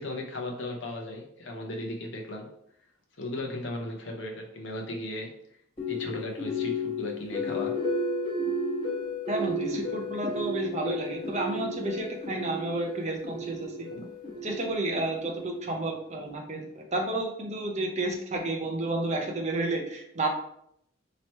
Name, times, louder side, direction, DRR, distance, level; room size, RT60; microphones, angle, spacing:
voice 1, 0.0-2.5 3.2-5.3 5.9-7.8 13.9-14.1, left 1 dB, 60° left, 1 dB, 0.8 m, -36 dB
sound 1, 5.8-15.9, left 1 dB, 25° left, 1.1 m, -33 dB
voice 2, 9.3-13.9 14.4-20.3, right 2 dB, 35° right, 2 dB, 0.6 m, -31 dB
3.0 x 2.9 x 4.3 m, 0.72 s
head